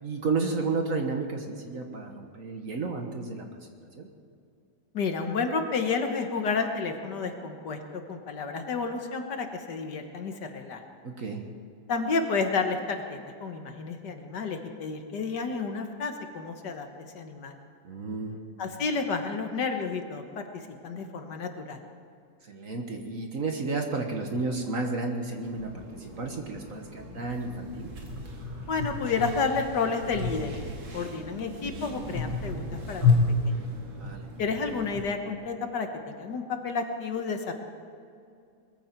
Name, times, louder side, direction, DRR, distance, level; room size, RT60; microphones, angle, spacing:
voice 1, 0.0-3.6 4.0-4.1 11.0-11.4 17.8-18.4 22.5-25.7 26.0-27.9 34.0-34.2, right 3 dB, 45° right, 3 dB, 1.5 m, -32 dB
voice 2, 4.9-10.8 11.9-16.9 17.1-17.5 18.6-21.8 28.7-30.6 30.9-33.1 33.4-33.6 34.4-37.5, left 4 dB, 60° left, 5 dB, 1.7 m, -31 dB
sound 1, 25.4-35.0, left 3 dB, 80° right, 3.1 m, -31 dB
21.0 x 14.5 x 4.6 m, 2.4 s
omnidirectional pair, 2.1 m